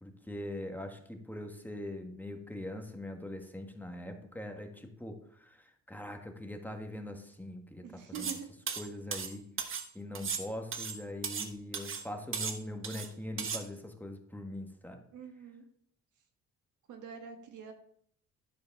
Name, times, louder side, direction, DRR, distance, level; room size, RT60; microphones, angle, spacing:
voice 1, 0.0-8.3 8.8-9.4 9.9-15.0, left 1 dB, 5° left, 4 dB, 1.4 m, -42 dB
voice 2, 7.8-8.5 15.1-15.6 16.9-17.7, right 7 dB, 80° right, 4 dB, 1.8 m, -45 dB
sound 1, 8.2-8.4 8.7-9.9 10.2-11.5 11.7-12.1 12.3-13.1 13.4-13.6, right 6 dB, 45° right, 1.1 m, -36 dB
11.5 x 4.7 x 5.9 m, 0.64 s
cardioid pair, 90°, 30 cm